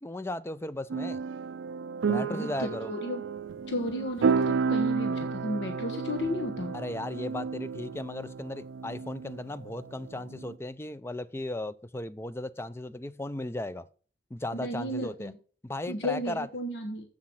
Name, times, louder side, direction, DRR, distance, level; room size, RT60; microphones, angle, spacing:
voice 1, 0.0-1.2 2.1-2.9 6.7-13.9 14.3-15.3 15.6-16.5, left 1 dB, 15° left, 0.4 m, -36 dB
sound 1, 0.9-10.6, right 5 dB, 85° right, 0.4 m, -32 dB
voice 2, 2.1-3.2 3.7-6.8 14.6-15.4 15.9-17.1, left 1 dB, 65° left, 1.2 m, -33 dB
7.6 x 7.3 x 6.2 m
head